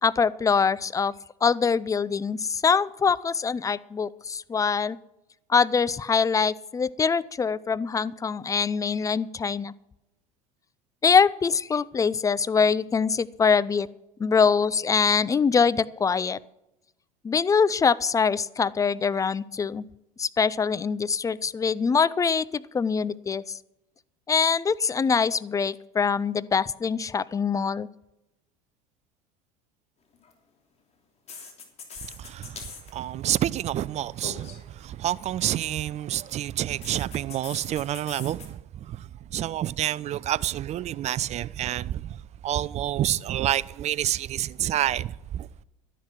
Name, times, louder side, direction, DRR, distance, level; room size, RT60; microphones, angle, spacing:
voice 1, 0.0-1.1 1.4-5.0 5.5-9.7 11.0-13.9 14.2-16.4 17.2-19.8 20.2-23.6 24.3-27.9, left 5 dB, 15° left, 0.5 m, -24 dB
sound 1, 30.1-30.3 31.3-32.9 33.2-33.6 34.2-34.6 36.8-38.5, left 5 dB, 35° left, 3.0 m, -42 dB
voice 2, 32.2-32.6 32.9-38.6 38.9-39.0 39.3-42.2 42.4-45.6, right 12 dB, 35° right, 0.5 m, -28 dB
12.0 x 10.5 x 6.1 m
hypercardioid pair, 75°, 19 cm